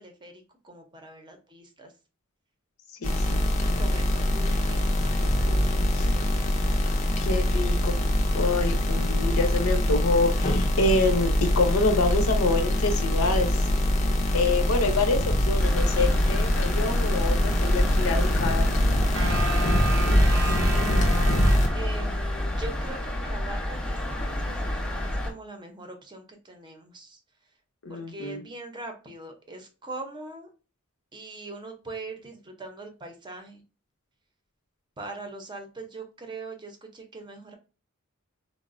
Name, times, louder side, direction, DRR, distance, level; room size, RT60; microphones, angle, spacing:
voice 1, 0.0-1.9 3.0-3.1 3.6-6.5 20.1-21.0 21.7-27.2 27.9-30.5 31.1-33.6 35.0-37.6, right 2 dB, 20° right, 4 dB, 0.6 m, -42 dB
voice 2, 3.0-3.4 5.9-6.1 7.2-8.0 8.3-11.3 11.6-13.5 14.3-18.7 27.8-28.4, left 3 dB, 85° left, 5 dB, 0.7 m, -26 dB
sound 1, 3.0-21.7, left 1 dB, 35° left, 0.5 m, -23 dB
sound 2, 15.6-25.3, left 1 dB, 5° left, 0.9 m, -29 dB
sound 3, 19.1-22.4, right 3 dB, 80° right, 0.6 m, -33 dB
3.9 x 2.0 x 2.4 m, 0.33 s
head